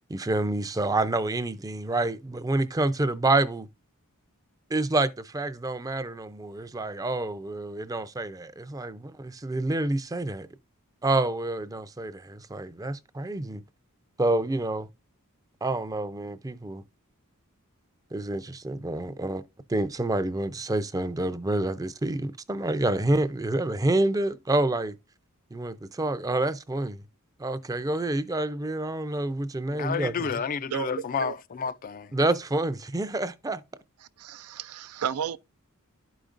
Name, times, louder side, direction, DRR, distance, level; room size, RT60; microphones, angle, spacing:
voice 1, 0.1-3.7 4.7-10.5 11.0-13.6 14.2-14.9 15.6-16.8 18.1-19.4 19.7-24.9 25.5-27.0 27.4-30.3 32.1-33.6, right 2 dB, 15° right, 0.5 m, -28 dB
voice 2, 29.7-32.1, left 6 dB, 40° left, 0.4 m, -31 dB
voice 3, 34.2-35.4, right 8 dB, 85° right, 0.4 m, -32 dB
12.0 x 5.1 x 2.5 m
head